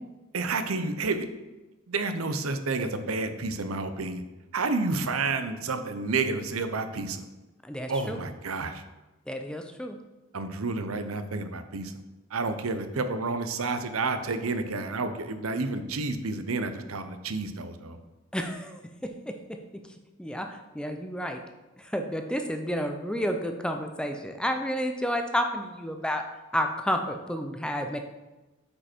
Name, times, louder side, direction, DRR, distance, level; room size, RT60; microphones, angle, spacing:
voice 1, 0.3-1.3 1.9-4.2 4.5-7.2 7.9-8.8 10.3-11.9 12.3-18.0, right 3 dB, 90° right, 9 dB, 0.7 m, -30 dB
voice 2, 7.6-8.2 9.3-10.0 18.3-19.1 20.2-21.4 21.8-26.2 26.5-28.0, equal, 5° left, 5 dB, 0.6 m, -30 dB
8.4 x 5.2 x 4.5 m, 1.1 s
head